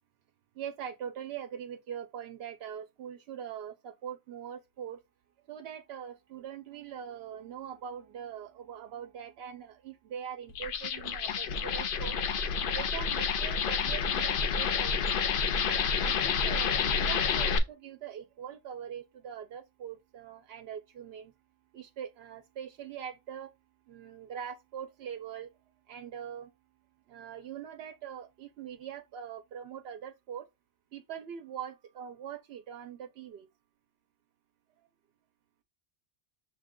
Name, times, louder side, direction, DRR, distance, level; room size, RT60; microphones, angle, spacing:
voice 1, 0.6-5.0 5.5-12.2 12.6-15.2 15.6-21.3 21.7-23.5 23.9-25.5 25.9-26.5 27.1-30.5 30.9-33.5, right 8 dB, 90° right, 0.8 m, -42 dB
sound 1, 10.5-17.6, left 6 dB, 65° left, 0.7 m, -29 dB
6.4 x 2.2 x 3.6 m
omnidirectional pair, 1.0 m